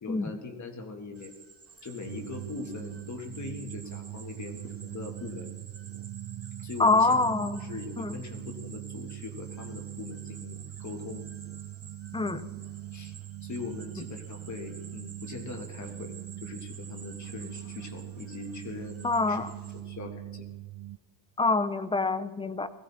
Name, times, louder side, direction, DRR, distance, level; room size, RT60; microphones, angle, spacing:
voice 1, 0.0-1.3 1.8-5.6 6.6-7.2 7.6-11.2 12.9-13.1 13.4-16.1 16.4-19.0 19.3-19.4 19.7-20.5, left 4 dB, 35° left, 4 dB, 1.7 m, -41 dB
sound 1, 1.2-19.8, right 5 dB, 30° right, 2.4 m, -51 dB
sound 2, 2.0-21.0, right 15 dB, 60° right, 0.6 m, -41 dB
voice 2, 6.8-7.6 8.0-8.2 12.1-12.5 19.0-19.5 21.4-22.7, left 3 dB, 10° left, 11 dB, 0.5 m, -25 dB
20.0 x 15.5 x 4.2 m, 1.2 s
cardioid pair, 140°, 47 cm